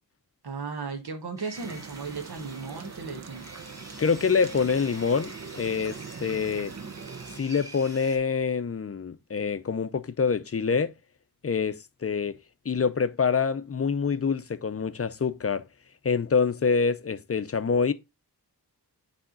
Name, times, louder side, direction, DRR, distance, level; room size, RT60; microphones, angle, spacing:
voice 1, 0.4-3.4, right 4 dB, 75° right, 1.4 m, -36 dB
Sawing, 1.4-8.2, right 1 dB, 10° right, 2.2 m, -47 dB
sound 1, 1.5-7.4, right 5 dB, 45° right, 0.7 m, -42 dB
voice 2, 4.0-6.7 7.4-10.9 11.4-12.3 12.7-15.6 16.0-17.9, left 5 dB, 40° left, 0.6 m, -26 dB
8.8 x 3.5 x 3.8 m
wide cardioid pair, 90°, 39 cm